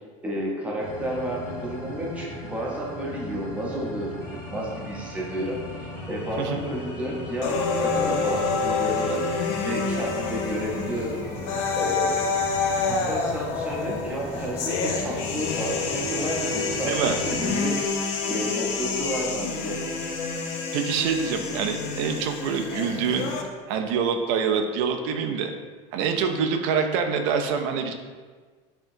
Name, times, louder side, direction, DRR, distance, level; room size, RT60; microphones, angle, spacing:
voice 1, 0.2-11.2 11.7-12.1 12.8-17.8 18.3-19.8, equal, 10° right, -3 dB, 0.6 m, -31 dB
sound 1, 0.8-17.6, left 1 dB, 15° left, 1.1 m, -38 dB
sound 2, 7.4-23.4, left 4 dB, 80° left, 0.6 m, -28 dB
voice 2, 20.7-23.3 23.7-25.5 25.9-27.9, right 6 dB, 75° right, 6 dB, 0.4 m, -25 dB
5.4 x 2.8 x 2.6 m, 1.5 s
cardioid pair, 165°, 15 cm